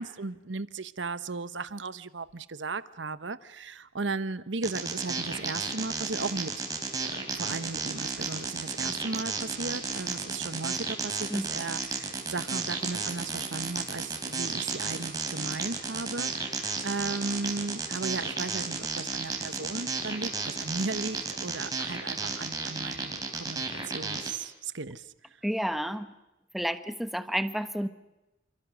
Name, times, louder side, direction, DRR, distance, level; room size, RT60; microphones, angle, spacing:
voice 1, 0.0-6.6 7.3-25.0, right 3 dB, 80° right, 14 dB, 1.1 m, -36 dB
sound 1, 4.6-24.3, right 4 dB, 20° right, 3.9 m, -33 dB
voice 2, 25.4-26.1 26.5-27.9, equal, ahead, 10 dB, 1.2 m, -30 dB
29.0 x 26.5 x 6.4 m, 0.98 s
head